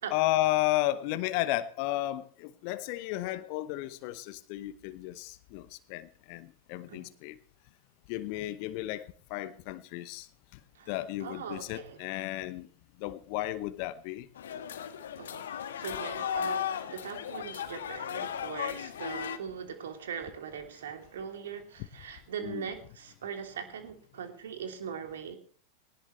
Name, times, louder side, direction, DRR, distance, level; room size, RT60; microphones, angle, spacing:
voice 1, 0.1-7.4 8.1-10.6 10.9-12.7 13.0-14.3 22.4-22.6, left 16 dB, 45° left, 15 dB, 0.9 m, -33 dB
voice 2, 10.7-12.0 15.2-25.4, right 7 dB, 60° right, 5 dB, 3.0 m, -41 dB
sound 1, 14.4-19.4, left 8 dB, 60° left, 1.5 m, -36 dB
19.5 x 18.5 x 3.2 m, 0.42 s
figure-of-eight pair, 90°, 0 cm